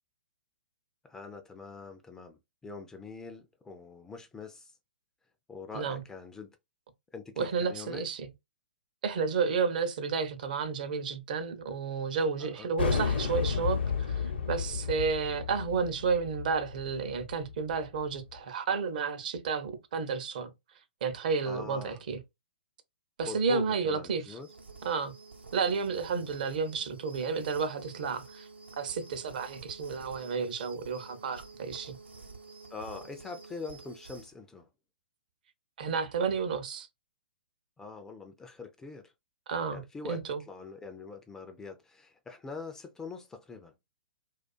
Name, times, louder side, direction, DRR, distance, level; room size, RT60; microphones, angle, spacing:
voice 1, 1.0-4.7 5.5-6.5 7.1-8.0 12.4-12.7 21.4-22.0 23.3-24.5 32.7-34.7 37.8-39.1 39.7-43.7, left 4 dB, 10° left, 0.3 m, -43 dB
voice 2, 7.4-8.2 9.0-20.5 21.0-22.2 23.2-24.2 24.8-25.1 25.5-28.5 28.8-32.0 35.8-36.9 39.5-39.8 40.1-40.4, right 5 dB, 50° right, 0.5 m, -31 dB
sound 1, 12.8-18.1, left 6 dB, 65° left, 0.7 m, -32 dB
sound 2, 24.4-34.3, right 4 dB, 85° right, 0.7 m, -50 dB
2.4 x 2.3 x 2.3 m
figure-of-eight pair, 120°, 6 cm